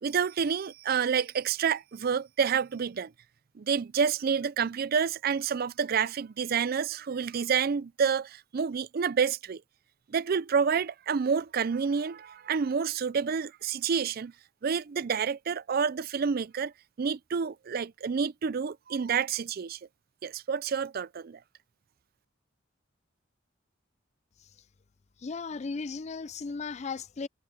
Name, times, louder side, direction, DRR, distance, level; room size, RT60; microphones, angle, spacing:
voice 1, 0.0-3.1 3.6-9.6 10.1-14.3 14.6-16.7 17.0-19.8 20.2-21.4, right 6 dB, 50° right, 0.4 m, -29 dB
voice 2, 25.2-27.3, left 4 dB, 35° left, 0.4 m, -36 dB
head